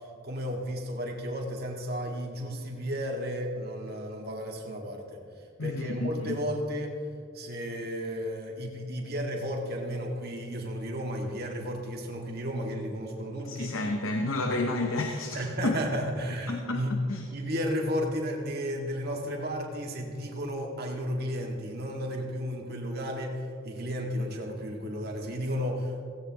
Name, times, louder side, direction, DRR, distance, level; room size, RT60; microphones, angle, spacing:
voice 1, 0.2-5.2 5.6-7.0 7.3-13.7 15.3-17.0 17.3-26.0, equal, 45° right, 0 dB, 1.9 m, -33 dB
voice 2, 5.6-6.4 13.5-15.8 16.5-17.2, left 2 dB, 70° left, 4 dB, 0.9 m, -31 dB
17.0 x 16.5 x 3.0 m, 2.2 s
head